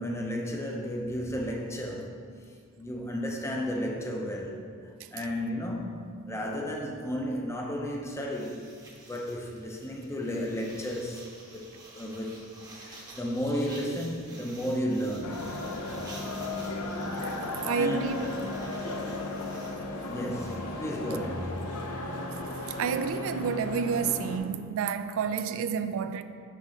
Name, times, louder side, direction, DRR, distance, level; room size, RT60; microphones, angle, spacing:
voice 1, 0.0-2.2 2.8-4.6 5.1-8.6 9.0-12.4 12.8-15.4 17.7-18.5 20.0-21.9, equal, 10° left, 0.5 m, -33 dB
sound 1, 8.3-20.5, right 2 dB, 15° right, 0.8 m, -50 dB
sound 2, 15.2-24.4, left 2 dB, 85° left, 0.6 m, -35 dB
voice 2, 17.7-18.2 22.8-26.2, right 6 dB, 60° right, 0.3 m, -29 dB
5.7 x 3.5 x 5.1 m
head